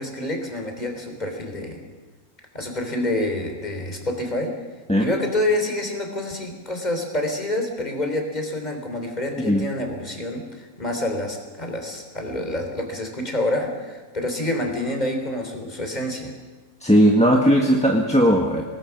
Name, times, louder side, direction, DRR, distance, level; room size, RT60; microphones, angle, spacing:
voice 1, 0.0-1.8 2.5-4.5 5.0-16.3, left 1 dB, 30° left, 3 dB, 3.9 m, -27 dB
voice 2, 16.8-18.6, equal, 5° left, 1 dB, 1.6 m, -17 dB
26.5 x 19.5 x 6.1 m, 1.3 s
omnidirectional pair, 1.5 m